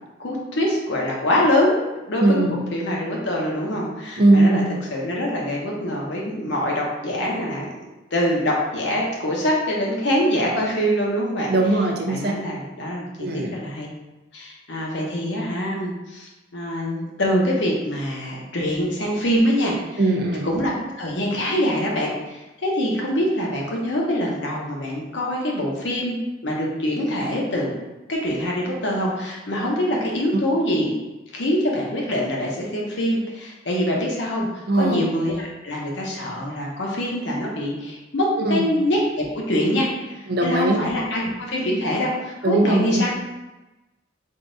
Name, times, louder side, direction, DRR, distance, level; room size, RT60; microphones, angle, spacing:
voice 1, 0.2-1.8 2.1-4.6 4.9-7.7 8.1-11.5 12.1-13.1 13.3-13.9 14.3-20.0 20.4-27.7 28.1-30.9 31.3-34.5 34.7-43.1, equal, 70° left, -2 dB, 0.9 m, -24 dB
voice 2, 2.2-2.6 4.2-4.7 11.5-12.3 13.2-13.5 20.0-20.5 34.7-35.0 38.4-38.6 40.3-40.8 42.4-43.0, right 2 dB, 55° right, 2 dB, 0.5 m, -19 dB
3.7 x 2.4 x 3.8 m, 1.1 s
head